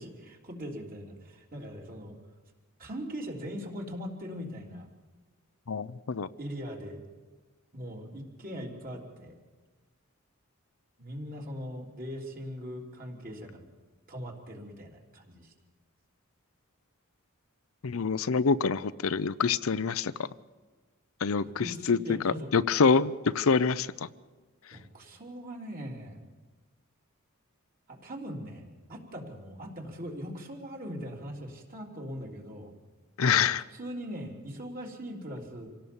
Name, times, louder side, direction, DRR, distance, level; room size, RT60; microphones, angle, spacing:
voice 1, 0.0-2.1 2.8-4.9 6.4-7.0 7.7-9.3 11.0-13.6 14.1-15.5 21.4-22.5 24.7-26.2 27.9-28.6 28.9-32.7 33.7-35.7, equal, 40° right, 0 dB, 3.5 m, -40 dB
voice 2, 5.7-6.3 17.8-20.1 21.2-22.0 22.2-23.9 33.2-33.6, left 5 dB, 75° left, 14 dB, 0.6 m, -26 dB
26.5 x 17.5 x 7.1 m, 1.3 s
head